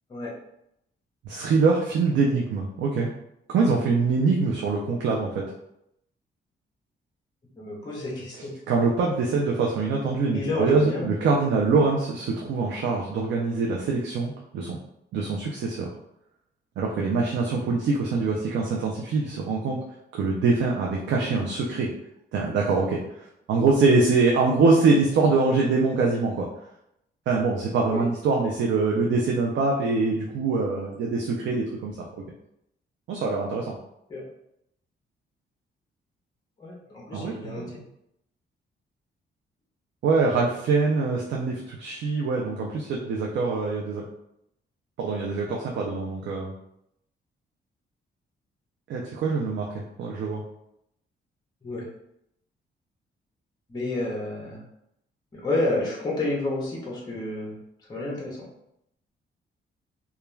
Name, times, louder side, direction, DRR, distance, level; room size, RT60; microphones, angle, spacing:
voice 1, 1.2-3.1 3.5-5.4 8.7-14.8 15.1-15.9 16.8-19.8 20.1-21.9 22.3-26.5 27.3-32.1 33.1-33.8 37.1-37.7 40.0-44.0 45.0-46.5 48.9-49.7 50.0-50.4, right 4 dB, 75° right, -1 dB, 0.4 m, -24 dB
voice 2, 7.6-8.5 10.3-11.1 27.9-28.1 34.1-34.2 36.6-37.8 51.6-51.8 53.7-54.6 55.3-57.6 57.9-58.5, left 2 dB, 20° left, -3 dB, 0.6 m, -30 dB
2.3 x 2.2 x 3.1 m, 0.79 s
cardioid pair, 145°, 19 cm